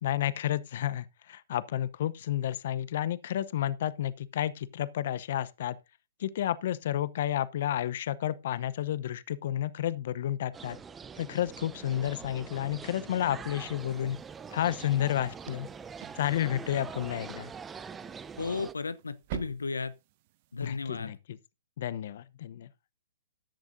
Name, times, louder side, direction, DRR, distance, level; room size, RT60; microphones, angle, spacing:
voice 1, 0.0-5.8 6.2-10.8 11.2-14.2 14.5-15.7 16.2-17.5 20.6-21.4 21.8-22.7, left 11 dB, 55° left, 0.8 m, -31 dB
sound 1, 10.5-18.7, right 6 dB, 15° right, 0.6 m, -44 dB
sound 2, 13.8-20.9, right 12 dB, 45° right, 1.1 m, -48 dB
voice 2, 18.4-19.9 20.5-21.2, left 4 dB, 85° left, 0.8 m, -34 dB
14.0 x 10.5 x 2.7 m
hypercardioid pair, 125°, 0 cm